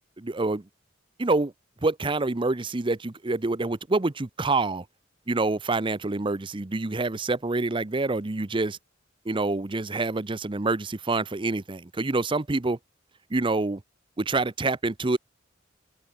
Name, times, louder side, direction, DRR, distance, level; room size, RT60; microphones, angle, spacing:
voice 1, 0.2-0.6 1.2-1.5 1.8-4.8 5.3-8.8 9.3-12.8 13.3-13.8 14.2-15.2, right 3 dB, 25° right, 0.7 m, -26 dB
head